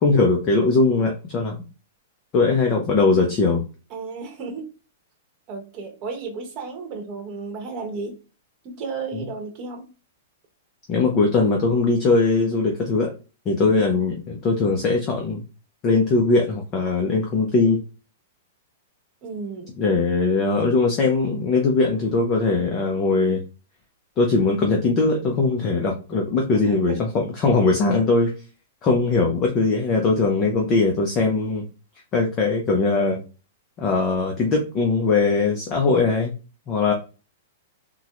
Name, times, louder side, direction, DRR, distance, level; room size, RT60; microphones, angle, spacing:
voice 1, 0.0-1.6 2.3-3.6 10.9-13.1 13.5-15.4 15.8-17.8 19.8-23.4 24.2-28.3 28.8-31.7 32.1-33.2 33.8-36.3 36.7-36.9, left 3 dB, 20° left, 1 dB, 0.4 m, -20 dB
voice 2, 3.9-4.6 5.5-8.2 8.6-9.9 19.2-19.8 26.5-27.0, right 4 dB, 25° right, 2 dB, 0.9 m, -33 dB
3.6 x 2.0 x 2.9 m, 0.33 s
supercardioid pair, 175°, 0 cm